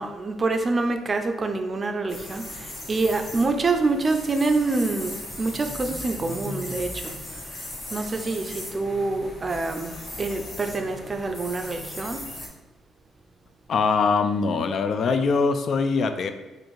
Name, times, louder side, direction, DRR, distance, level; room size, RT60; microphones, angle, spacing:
voice 1, 0.0-7.1 7.9-12.3, right 3 dB, 35° right, 6 dB, 0.4 m, -26 dB
sound 1, 2.1-12.5, left 1 dB, 35° left, 0.9 m, -38 dB
voice 2, 13.7-16.3, left 4 dB, 60° left, 8 dB, 0.3 m, -22 dB
4.3 x 2.5 x 3.1 m, 1.1 s
cardioid pair, 90°, 0 cm